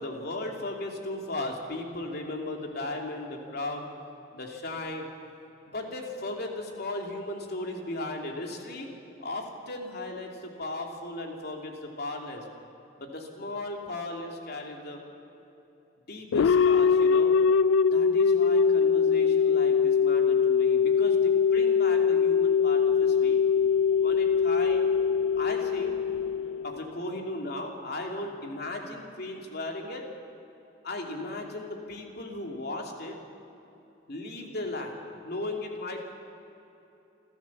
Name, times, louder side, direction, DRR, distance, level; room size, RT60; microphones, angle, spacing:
voice 1, 0.0-3.9 4.3-5.1 5.6-8.9 9.2-12.4 13.0-15.0 16.1-17.4 17.8-23.4 24.0-24.8 25.4-26.0 26.6-30.1 30.8-33.2 34.1-36.0, left 2 dB, 55° left, 1 dB, 2.8 m, -36 dB
sound 1, 16.3-27.0, left 6 dB, 90° left, 0.4 m, -22 dB
28.5 x 13.0 x 7.3 m, 3.0 s
head